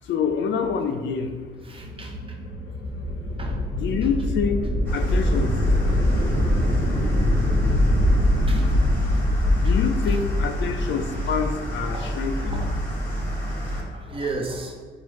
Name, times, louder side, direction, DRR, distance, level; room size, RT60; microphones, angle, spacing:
voice 1, 0.1-1.4 3.7-4.6 4.9-5.5 9.6-12.7, left 6 dB, 65° left, 6 dB, 0.4 m, -26 dB
sound 1, 1.5-11.6, left 1 dB, 75° right, 0.8 m, -23 dB
voice 2, 1.6-2.4 3.4-3.6 5.0-5.2 5.9-6.0 8.5-8.7 9.1-9.2 9.6-9.8 10.1-10.2 11.9-12.8 13.5-14.8, right 3 dB, 25° right, 2 dB, 0.6 m, -35 dB
sound 2, 4.8-13.8, equal, 10° left, 1.3 m, -29 dB
4.6 x 2.3 x 3.0 m, 1.5 s
cardioid pair, 90°, 20 cm